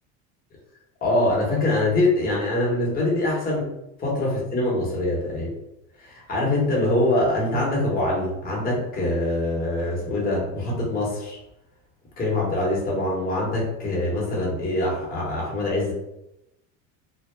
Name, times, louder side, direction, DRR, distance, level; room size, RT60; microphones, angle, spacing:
voice 1, 1.0-3.7 4.0-5.6 6.0-11.4 12.2-15.9, left 1 dB, 25° left, -4 dB, 1.0 m, -24 dB
2.2 x 2.1 x 3.1 m, 0.88 s
supercardioid pair, 120°, 37 cm